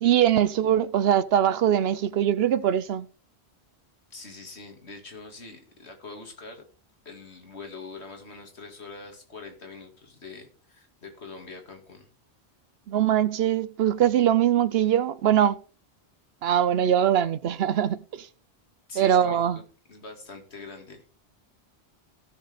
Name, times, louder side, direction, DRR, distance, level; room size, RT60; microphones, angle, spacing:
voice 1, 0.0-3.1 12.9-15.6 16.4-18.3 19.0-19.6, right 10 dB, 70° right, 0.8 m, -22 dB
voice 2, 4.1-6.6 7.1-12.1 18.9-19.6 19.9-21.0, left 3 dB, 90° left, 2.4 m, -44 dB
15.5 x 6.5 x 3.4 m
omnidirectional pair, 1.1 m